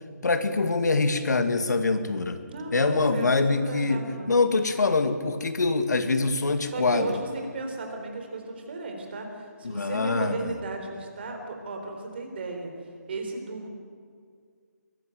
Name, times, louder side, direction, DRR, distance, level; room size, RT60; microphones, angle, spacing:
voice 1, 0.2-2.4 2.7-4.0 4.3-7.1 9.6-10.5, left 3 dB, 75° left, 8 dB, 2.1 m, -24 dB
voice 2, 2.5-4.4 6.7-12.7 13.1-13.7, right 3 dB, 35° right, 3 dB, 3.9 m, -35 dB
22.5 x 15.0 x 9.2 m, 2.1 s
hypercardioid pair, 170°, 9 cm